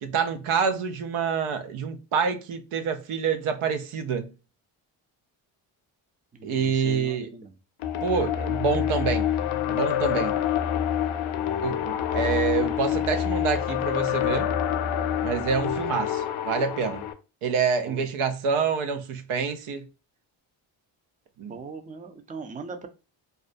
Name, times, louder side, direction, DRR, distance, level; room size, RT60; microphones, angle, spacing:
voice 1, 0.0-4.3 6.4-7.3 8.0-9.3 9.7-10.4 11.6-14.5 15.2-17.0 17.4-19.8 21.4-21.5, right 6 dB, 80° right, 0.6 m, -27 dB
voice 2, 6.3-7.6 11.4-11.8 17.9-18.0 21.5-22.9, right 4 dB, 15° right, 0.4 m, -40 dB
sound 1, 7.8-17.1, left 10 dB, 75° left, 0.5 m, -27 dB
2.4 x 2.1 x 2.5 m
cardioid pair, 50°, 49 cm